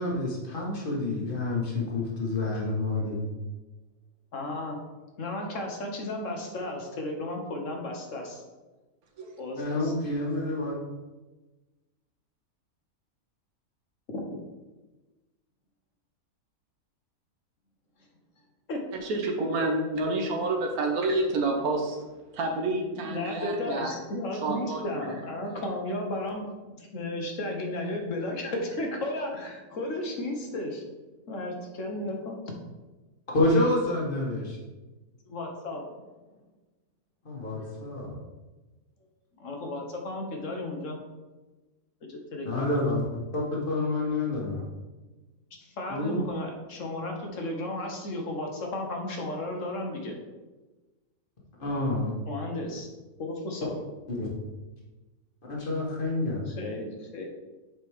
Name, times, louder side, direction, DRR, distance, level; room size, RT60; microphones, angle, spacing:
voice 1, 0.0-3.2 9.6-10.8 33.3-34.6 37.2-38.2 42.4-43.0 43.3-44.6 45.9-46.3 51.6-52.1 54.1-54.3 55.5-56.5, left 2 dB, 35° left, -3 dB, 1.7 m, -28 dB
voice 2, 4.3-4.8 5.2-8.4 9.4-9.9 18.7-18.8 19.6-19.7 23.1-30.8 31.3-32.5 35.3-35.9 39.4-41.0 42.0-42.7 45.6-50.1 52.3-52.9 53.2-53.7 56.5-57.3, left 1 dB, 60° left, 2 dB, 1.5 m, -34 dB
voice 3, 19.0-22.0 22.3-23.9 24.4-25.1, right 2 dB, 80° right, 2 dB, 1.5 m, -29 dB
7.6 x 5.2 x 3.6 m, 1.2 s
omnidirectional pair, 1.5 m